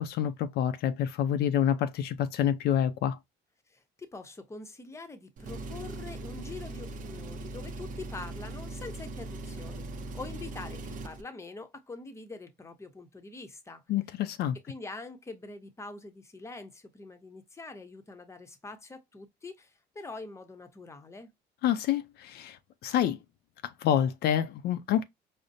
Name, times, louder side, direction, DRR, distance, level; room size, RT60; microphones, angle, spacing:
voice 1, 0.0-3.2 13.9-14.6 21.6-23.2 23.6-25.0, left 10 dB, 75° left, 0.5 m, -28 dB
voice 2, 3.7-9.9 10.1-13.8 14.7-21.3, left 3 dB, 15° left, 0.7 m, -44 dB
Engine, 5.4-11.2, right 2 dB, 50° right, 0.6 m, -40 dB
5.0 x 2.0 x 2.6 m
cardioid pair, 110°, 17 cm